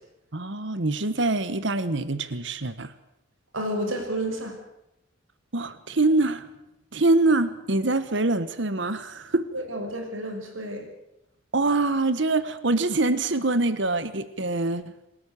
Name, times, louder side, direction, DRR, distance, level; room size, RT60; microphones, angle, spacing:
voice 1, 0.3-2.9 5.5-6.5 6.9-9.5 11.5-14.8, right 2 dB, 65° right, 13 dB, 1.3 m, -24 dB
voice 2, 3.5-4.5 9.5-10.8, right 1 dB, 90° right, 3 dB, 5.9 m, -30 dB
27.5 x 13.0 x 8.4 m, 0.88 s
head